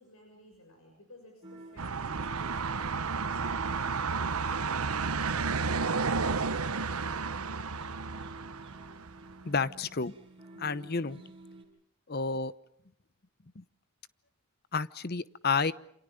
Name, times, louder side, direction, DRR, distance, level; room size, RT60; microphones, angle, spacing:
voice 1, 0.0-3.9, left 1 dB, 75° left, 3 dB, 6.7 m, -57 dB
sound 1, 1.4-11.7, right 2 dB, 25° right, 6.0 m, -50 dB
sound 2, 1.8-9.3, right 4 dB, 85° right, 1.1 m, -32 dB
voice 2, 9.4-10.1 10.6-11.2 12.1-12.5 13.6-13.7 14.7-15.7, left 4 dB, 45° left, 16 dB, 0.9 m, -30 dB
28.5 x 27.5 x 5.2 m, 0.73 s
head